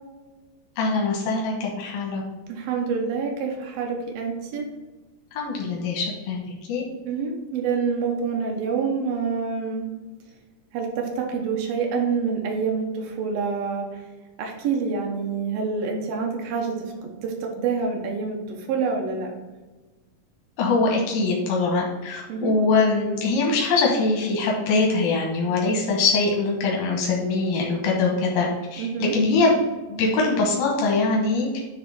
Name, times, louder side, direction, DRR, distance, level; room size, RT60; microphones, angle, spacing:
voice 1, 0.8-2.2 5.3-6.4 6.7-6.8 20.6-29.5 29.9-31.6, left 3 dB, 85° left, -1 dB, 3.0 m, -23 dB
voice 2, 2.5-4.7 7.0-9.9 10.7-14.0 14.4-16.9 17.2-19.3 22.3-22.5 28.8-29.2, right 5 dB, 85° right, 0 dB, 3.0 m, -27 dB
10.0 x 3.4 x 4.9 m, 1.2 s
omnidirectional pair, 4.0 m